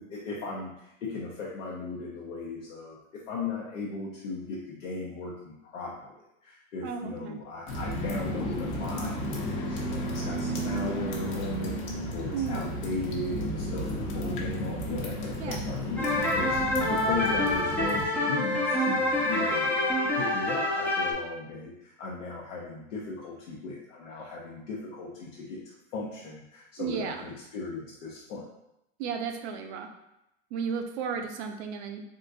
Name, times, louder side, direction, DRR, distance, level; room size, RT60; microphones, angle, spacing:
voice 1, 0.0-28.4, left 3 dB, 85° left, -4 dB, 0.7 m, -37 dB
voice 2, 6.8-7.4 12.3-12.7 15.4-15.6 26.8-27.2 29.0-29.9 30.5-32.0, right 6 dB, 60° right, 5 dB, 0.6 m, -34 dB
sound 1, 7.7-18.1, equal, 50° left, 0.9 m, -33 dB
sound 2, 16.0-21.1, left 1 dB, 5° left, 0.3 m, -26 dB
3.6 x 2.5 x 2.6 m, 0.86 s
hypercardioid pair, 115°, 37 cm